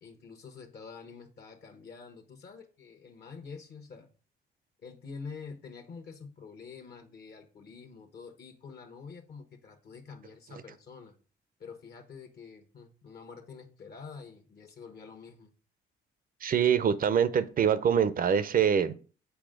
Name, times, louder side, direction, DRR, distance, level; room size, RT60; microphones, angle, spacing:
voice 1, 0.0-4.1 4.8-11.1 11.6-15.5, left 5 dB, 55° left, 1.1 m, -47 dB
voice 2, 16.4-18.9, right 8 dB, 45° right, 0.6 m, -24 dB
7.0 x 4.4 x 3.8 m
cardioid pair, 90°, 20 cm